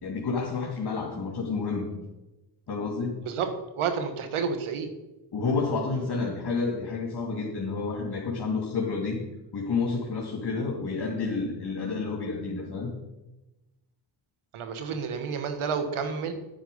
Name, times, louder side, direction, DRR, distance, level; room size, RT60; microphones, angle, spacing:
voice 1, 0.0-1.9 2.7-3.2 5.3-9.2 9.5-12.9, left 4 dB, 50° left, -2 dB, 2.4 m, -30 dB
voice 2, 3.8-4.9 14.5-16.3, right 6 dB, 80° right, 8 dB, 1.5 m, -30 dB
9.1 x 8.9 x 5.4 m, 1.0 s
supercardioid pair, 50°, 49 cm